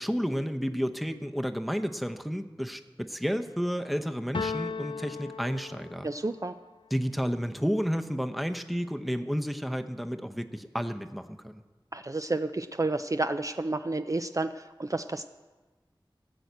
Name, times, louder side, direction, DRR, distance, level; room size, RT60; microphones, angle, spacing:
voice 1, 0.0-6.1 6.9-11.6, equal, ahead, 7 dB, 0.7 m, -31 dB
sound 1, 4.3-6.3, left 5 dB, 75° left, 0.4 m, -36 dB
voice 2, 6.0-6.6 11.9-15.2, right 2 dB, 40° right, 8 dB, 0.4 m, -30 dB
14.5 x 6.3 x 8.2 m, 1.3 s
wide cardioid pair, 45°, 9 cm